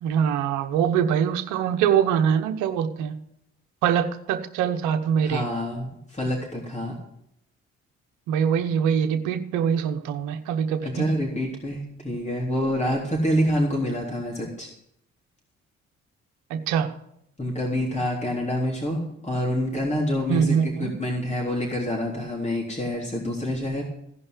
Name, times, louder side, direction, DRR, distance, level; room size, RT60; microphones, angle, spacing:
voice 1, 0.0-3.1 3.8-5.4 8.3-11.1 16.5-16.9 20.3-20.9, right 8 dB, 85° right, 6 dB, 1.1 m, -23 dB
voice 2, 5.2-7.0 10.8-14.7 17.4-23.8, equal, 25° left, -1 dB, 3.6 m, -27 dB
16.5 x 5.5 x 9.8 m, 0.77 s
supercardioid pair, 55°, 30 cm